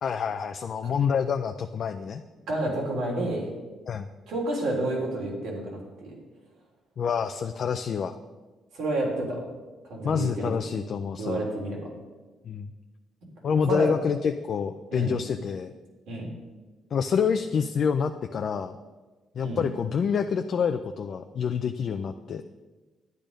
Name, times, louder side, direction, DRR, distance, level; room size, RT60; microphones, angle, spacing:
voice 1, 0.0-2.2 3.9-4.1 7.0-8.2 10.0-11.5 12.4-12.7 13.4-15.7 16.9-18.7 19.4-22.4, left 6 dB, 55° left, 6 dB, 0.5 m, -27 dB
voice 2, 2.5-3.5 4.3-6.1 8.7-9.4 9.9-10.5 11.2-11.8 13.7-13.9 14.9-15.1 16.1-16.3 19.4-19.6, right 1 dB, 80° right, -2 dB, 3.4 m, -29 dB
10.5 x 8.9 x 5.2 m, 1.2 s
cardioid pair, 90°, 0 cm